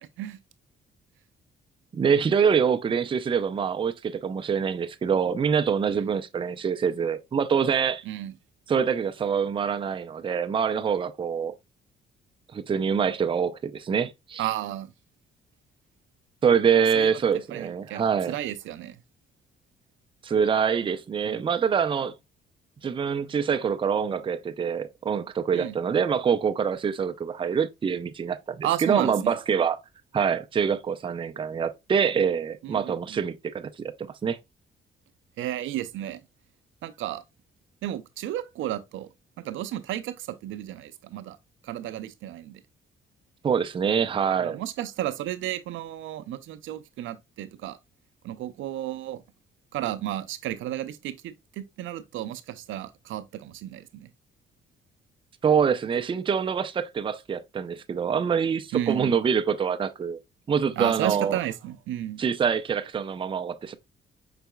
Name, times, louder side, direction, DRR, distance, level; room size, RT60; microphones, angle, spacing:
voice 1, 1.9-8.0 8.7-11.5 12.5-14.4 16.4-18.3 20.2-22.1 22.8-29.8 30.1-34.4 43.4-44.6 55.4-60.2 60.5-61.4 62.2-63.8, right 7 dB, 25° right, 0.4 m, -25 dB
voice 2, 14.4-14.9 16.9-17.2 17.5-19.0 21.2-21.5 25.5-25.8 28.6-29.4 32.6-33.2 35.4-36.2 36.8-37.2 37.8-39.1 39.4-41.4 41.6-42.6 44.4-47.8 48.2-49.2 49.7-54.1 58.7-59.1 60.8-62.2, right 12 dB, 80° right, 0.5 m, -33 dB
5.5 x 4.0 x 2.2 m
cardioid pair, 90°, 20 cm